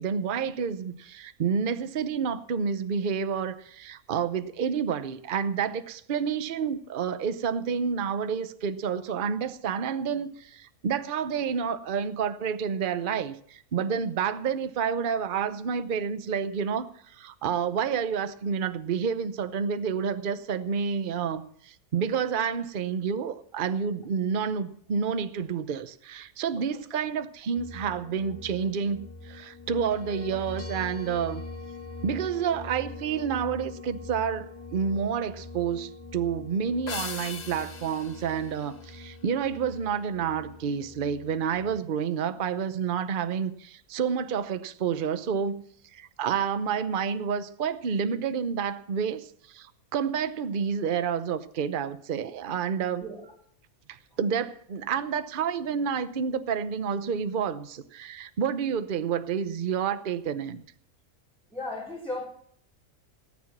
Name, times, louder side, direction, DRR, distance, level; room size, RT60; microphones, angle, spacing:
voice 1, 0.0-31.4 32.0-45.6 45.9-53.0 53.9-60.6, right 7 dB, 45° right, 12 dB, 0.8 m, -29 dB
sound 1, 27.6-41.8, left 3 dB, 15° left, 1.9 m, -43 dB
sound 2, 36.9-39.5, left 6 dB, 45° left, 0.6 m, -40 dB
voice 2, 53.0-53.3 61.5-62.3, left 2 dB, ahead, -7 dB, 3.7 m, -36 dB
18.0 x 9.7 x 6.0 m, 0.65 s
omnidirectional pair, 1.5 m